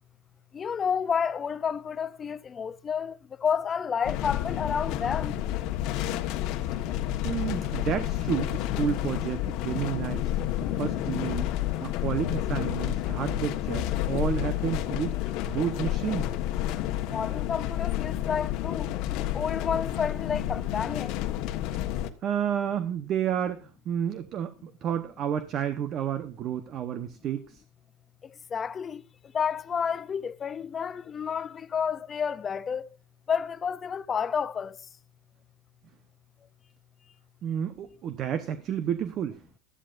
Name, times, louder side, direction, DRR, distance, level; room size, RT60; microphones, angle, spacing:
voice 1, 0.5-5.4 17.0-18.9 19.3-21.2 28.5-29.0 29.3-32.9 33.3-34.8, left 7 dB, 20° left, 0.5 m, -30 dB
sound 1, 4.0-22.1, left 12 dB, 50° left, 1.3 m, -30 dB
voice 2, 7.2-10.3 10.8-11.5 11.8-15.2 15.5-16.3 22.2-27.4 37.4-39.4, right 9 dB, 35° right, 1.0 m, -30 dB
17.0 x 12.5 x 2.5 m
supercardioid pair, 150°, 0 cm